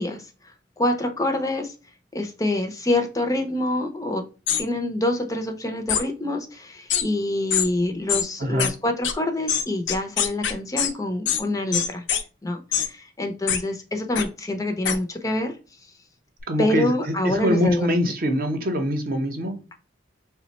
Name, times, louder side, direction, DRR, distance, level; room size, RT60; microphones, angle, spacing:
voice 1, 0.0-1.7 2.1-4.2 4.6-12.0 12.4-15.6 16.6-17.9, left 1 dB, 20° left, 5 dB, 0.4 m, -26 dB
sound 1, 4.5-4.6 5.9-6.0 6.9-7.0 7.5-7.7 8.1-8.2 8.6-8.7 9.0-9.1 9.5-10.9 11.3-11.4 11.7-12.2 12.7-12.9 13.5-13.6 14.2-14.3 14.8-15.0, left 8 dB, 75° left, 0.5 m, -23 dB
voice 2, 16.5-19.6, equal, 50° right, 5 dB, 0.7 m, -24 dB
3.2 x 2.1 x 4.0 m, 0.33 s
head